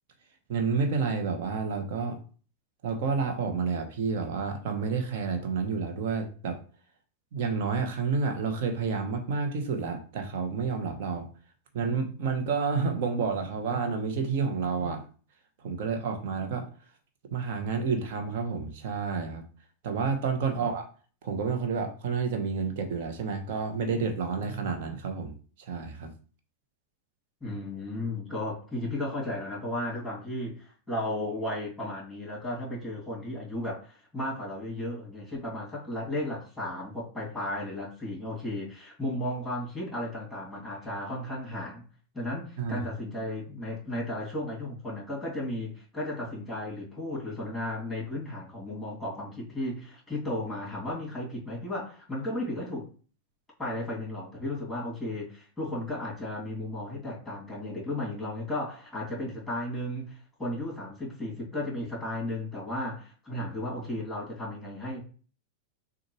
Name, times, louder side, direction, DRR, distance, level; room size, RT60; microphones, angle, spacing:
voice 1, 0.5-2.2 2.8-6.6 7.3-11.3 11.7-15.0 15.6-16.7 17.3-19.4 19.8-20.9 21.2-26.1 42.6-42.8, right 5 dB, 50° right, 5 dB, 1.0 m, -30 dB
voice 2, 27.4-41.8 42.1-52.9 53.6-65.0, left 1 dB, 5° left, -4 dB, 2.5 m, -34 dB
6.4 x 2.5 x 3.1 m, 0.39 s
figure-of-eight pair, 90°, 0 cm